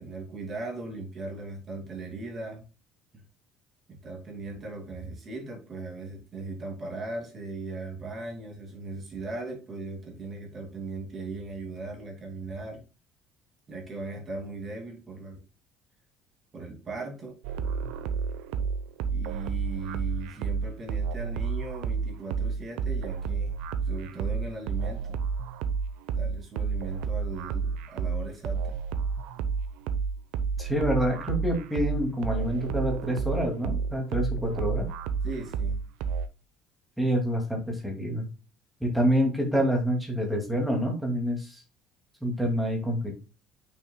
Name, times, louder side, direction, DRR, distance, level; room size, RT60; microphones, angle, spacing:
voice 1, 0.0-2.7 3.1-3.2 4.0-12.8 13.7-15.4 16.5-17.4 19.1-23.6 23.8-25.2 26.1-28.8 35.2-35.8, right 3 dB, 25° right, 2 dB, 2.6 m, -38 dB
sound 1, 17.4-36.3, right 5 dB, 80° right, 0.9 m, -31 dB
voice 2, 30.6-34.9 37.0-38.3 38.8-41.6 42.2-43.1, equal, ahead, 0 dB, 2.4 m, -27 dB
8.5 x 6.4 x 2.3 m, 0.31 s
cardioid pair, 160°, 0 cm